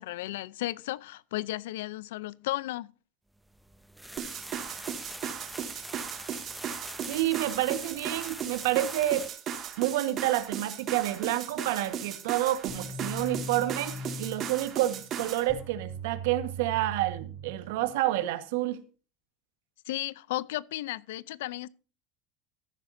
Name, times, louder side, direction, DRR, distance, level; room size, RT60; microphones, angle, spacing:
voice 1, 0.0-2.9 19.9-21.7, left 16 dB, 85° left, 0.5 m, -34 dB
sound 1, 3.5-9.3, right 1 dB, 5° right, 1.1 m, -43 dB
sound 2, 4.2-15.5, right 8 dB, 45° right, 2.1 m, -37 dB
voice 2, 7.1-9.3 9.8-18.8, right 14 dB, 80° right, 1.4 m, -29 dB
sound 3, 12.7-18.3, right 1 dB, 15° left, 3.4 m, -40 dB
14.0 x 10.5 x 2.7 m
supercardioid pair, 110°, 0 cm